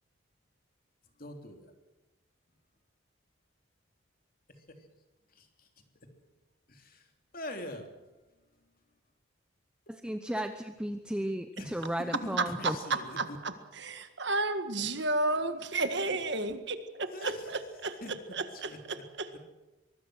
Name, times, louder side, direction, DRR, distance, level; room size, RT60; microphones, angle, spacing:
voice 1, 1.2-1.7 4.6-4.7 5.3-5.7 6.7-7.1 7.3-7.9 10.1-10.4 11.6-13.4 15.3-16.2 17.1-17.5 18.0-18.1 18.5-19.4, left 1 dB, 45° left, 4 dB, 3.2 m, -44 dB
voice 2, 9.9-12.8, right 1 dB, 5° right, 7 dB, 0.8 m, -34 dB
voice 3, 12.4-17.3 17.8-19.4, right 3 dB, 55° right, 9 dB, 1.8 m, -32 dB
24.0 x 20.5 x 6.4 m, 1.1 s
head